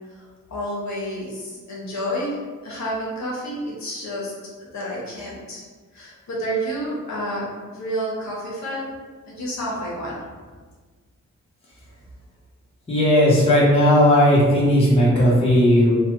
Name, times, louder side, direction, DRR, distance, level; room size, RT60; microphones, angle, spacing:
voice 1, 0.5-2.4 2.6-4.3 4.7-5.7 5.9-7.4 7.7-9.0 9.3-10.2, equal, 60° left, -5 dB, 0.9 m, -29 dB
voice 2, 12.9-15.9, equal, 20° left, -7 dB, 0.8 m, -16 dB
3.2 x 2.1 x 3.0 m, 1.5 s
wide cardioid pair, 135°, 31 cm